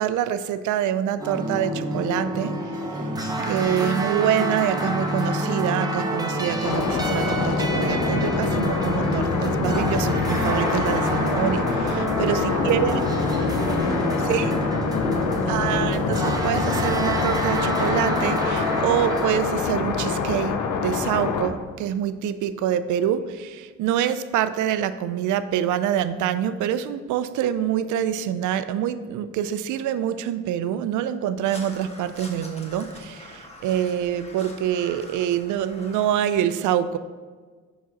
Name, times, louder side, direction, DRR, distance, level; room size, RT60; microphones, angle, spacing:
voice 1, 0.0-2.6 3.4-12.4 12.6-13.0 14.3-14.5 15.5-20.6 20.8-37.0, right 10 dB, 80° right, 13 dB, 0.4 m, -25 dB
sound 1, 1.2-19.3, right 1 dB, 15° right, 0.9 m, -27 dB
sound 2, 6.6-21.5, left 5 dB, 85° left, 0.7 m, -25 dB
voice 2, 12.0-13.1 13.3-15.8, equal, 65° left, 3 dB, 1.2 m, -34 dB
Crow, 31.4-36.4, left 1 dB, 20° left, 1.1 m, -44 dB
6.0 x 5.1 x 3.9 m, 1.5 s
cardioid pair, 90°, 30 cm